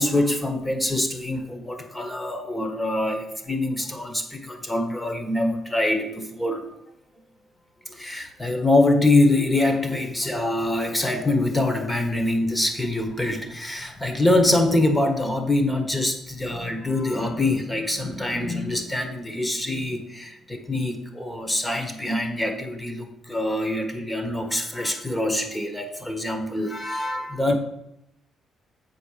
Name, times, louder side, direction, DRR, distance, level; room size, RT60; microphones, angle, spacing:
voice 1, 0.0-6.7 7.8-27.5, left 2 dB, 10° left, 5 dB, 1.5 m, -24 dB
7.9 x 4.4 x 6.7 m, 0.81 s
cardioid pair, 90°, 0 cm